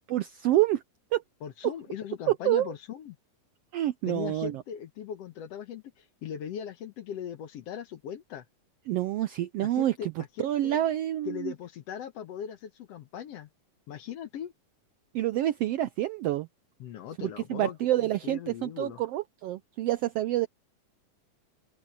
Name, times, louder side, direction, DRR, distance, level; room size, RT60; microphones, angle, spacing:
voice 1, 0.1-0.8 1.1-1.2 1.6-1.7 2.3-2.7 3.7-4.6 8.9-11.5 15.1-16.5 17.2-20.5, right 14 dB, 85° right, 1.4 m, -28 dB
voice 2, 1.4-3.2 4.1-8.5 9.6-10.1 10.4-10.8 11.3-13.5 13.9-14.5 16.8-19.0, left 9 dB, 65° left, 1.9 m, -39 dB
open air
omnidirectional pair, 3.5 m